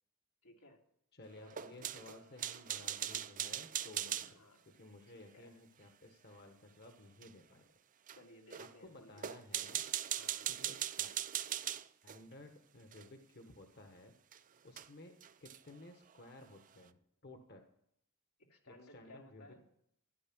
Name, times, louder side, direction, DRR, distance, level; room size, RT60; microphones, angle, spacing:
voice 1, 0.4-0.8 1.4-1.8 4.2-4.6 5.1-5.6 8.1-9.5 10.1-10.5 18.4-19.6, left 1 dB, 85° left, 0 dB, 3.0 m, -60 dB
voice 2, 1.1-7.8 8.6-9.8 10.5-11.2 12.0-14.1 14.6-17.6 18.7-19.6, left 2 dB, 45° left, 5 dB, 1.4 m, -56 dB
sound 1, 1.5-4.3 7.2-7.3 8.1-8.2 8.5-8.7 9.2-12.2 12.9-13.1 14.3-14.4 14.8-14.9 15.2-15.7, right 11 dB, 35° right, 0.5 m, -39 dB
14.5 x 11.0 x 6.1 m, 0.74 s
head